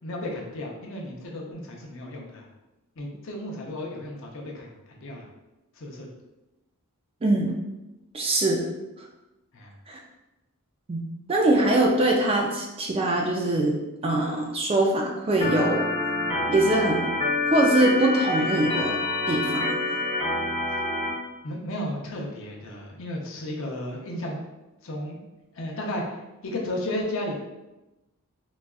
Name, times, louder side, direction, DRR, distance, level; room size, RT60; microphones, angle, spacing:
voice 1, 0.0-2.5 3.0-5.3 5.8-6.1 9.5-9.7 21.4-24.4 24.8-25.2 25.5-26.2 26.4-27.3, left 1 dB, 60° left, -1 dB, 0.6 m, -33 dB
voice 2, 7.2-7.5 8.1-8.8 9.9-10.0 10.9-11.0 11.3-13.8 14.0-15.8 16.5-17.1 17.5-19.0 19.3-19.8, right 1 dB, 25° right, 0 dB, 0.3 m, -22 dB
Organ, 15.4-21.1, left 2 dB, 25° left, 0.8 m, -27 dB
3.9 x 2.3 x 2.3 m, 1.0 s
head